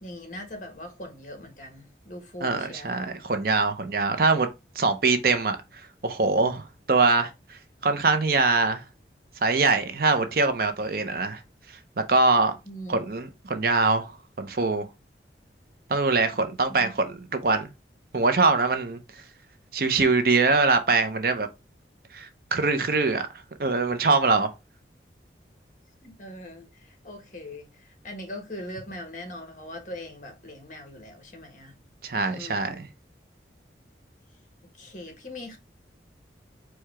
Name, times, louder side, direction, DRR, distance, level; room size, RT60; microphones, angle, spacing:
voice 1, 0.0-2.9 12.6-13.0 16.7-16.9 26.0-31.7 32.1-32.8 34.7-35.6, left 1 dB, 45° left, 1.2 m, -41 dB
voice 2, 2.4-4.5 4.8-5.6 6.0-8.8 9.4-11.4 12.1-12.5 12.9-14.1 14.4-14.9 15.9-17.1 17.4-17.7 18.1-19.0 19.7-21.5 22.1-23.2 23.6-24.5 32.0-32.7, right 3 dB, 55° right, 0.6 m, -23 dB
4.6 x 2.2 x 4.7 m
head